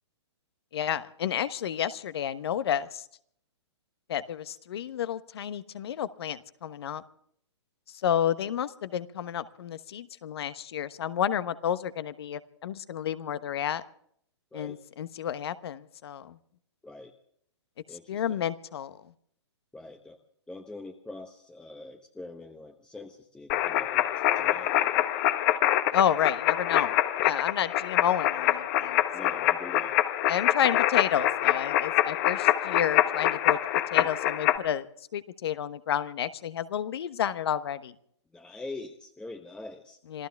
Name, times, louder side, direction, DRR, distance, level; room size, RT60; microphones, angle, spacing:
voice 1, 0.7-3.0 4.1-7.0 8.0-13.8 14.5-16.4 18.1-19.0 25.9-26.9 27.2-29.5 30.3-33.6 33.9-34.9 35.1-37.9 40.1-40.3, left 9 dB, 60° left, 13 dB, 1.2 m, -30 dB
voice 2, 17.9-18.4 19.7-20.2 20.5-24.1 24.4-25.1 29.1-30.0 33.9-34.1 38.3-40.0, left 2 dB, 5° left, 5 dB, 1.0 m, -43 dB
sound 1, 23.5-34.6, left 13 dB, 40° left, 1.2 m, -25 dB
27.0 x 14.5 x 3.5 m, 0.65 s
hypercardioid pair, 125°, 15 cm